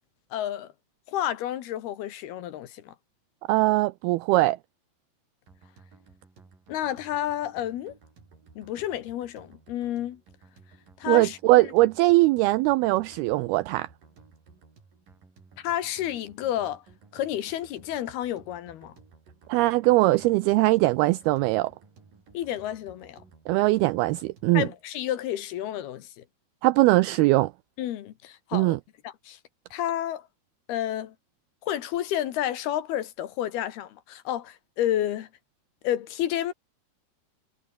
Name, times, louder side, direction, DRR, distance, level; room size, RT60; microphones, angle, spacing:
voice 1, 0.3-0.7 1.1-2.9 6.7-7.9 8.6-10.2 11.0-11.7 15.6-16.8 17.1-18.9 22.3-23.2 24.5-26.2 27.8-28.8 29.0-29.4 29.7-30.3 30.7-31.1 31.6-35.3 35.8-36.5, left 12 dB, 70° left, 3.2 m, -30 dB
voice 2, 3.5-4.6 11.1-13.9 19.5-21.7 23.5-24.7 26.6-27.5 28.5-28.8, right 20 dB, 90° right, 2.2 m, -21 dB
sound 1, 5.5-24.7, right 4 dB, 50° right, 7.6 m, -56 dB
omnidirectional pair, 5.0 m